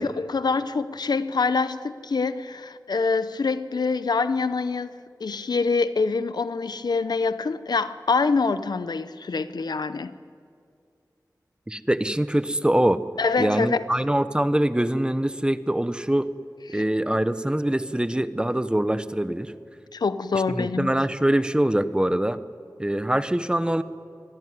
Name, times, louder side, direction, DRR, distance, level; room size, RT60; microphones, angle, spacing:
voice 1, 0.0-4.9 5.2-10.2 13.2-13.8 16.7-16.9 19.9-21.0, left 4 dB, 90° left, 0.8 m, -25 dB
voice 2, 11.7-13.0 13.4-16.3 16.7-19.5 20.5-22.4 22.8-23.8, right 1 dB, 15° right, 1.0 m, -23 dB
25.0 x 17.0 x 9.5 m
wide cardioid pair, 50°, 7 cm